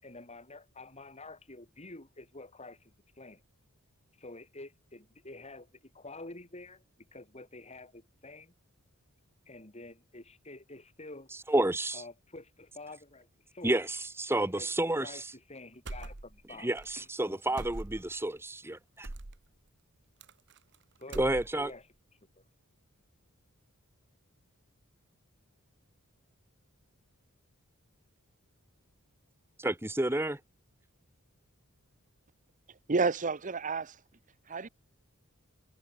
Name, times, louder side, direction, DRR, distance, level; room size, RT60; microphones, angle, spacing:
voice 1, 0.0-3.4 4.1-6.8 7.1-8.5 9.4-11.3 11.9-13.8 14.5-14.7 15.0-16.7 17.0-17.7 21.0-22.4, left 2 dB, 30° left, 4.7 m, -49 dB
voice 2, 11.5-12.0 13.6-15.3 16.6-19.1 21.1-21.7 29.6-30.4, right 1 dB, 10° right, 1.3 m, -30 dB
sound 1, 15.9-16.5 16.8-16.9 17.6-18.2 19.0-19.4 20.2-20.8 21.0-21.8, right 2 dB, 55° right, 1.4 m, -42 dB
voice 3, 32.9-34.0 34.5-34.7, right 4 dB, 35° right, 0.8 m, -30 dB
head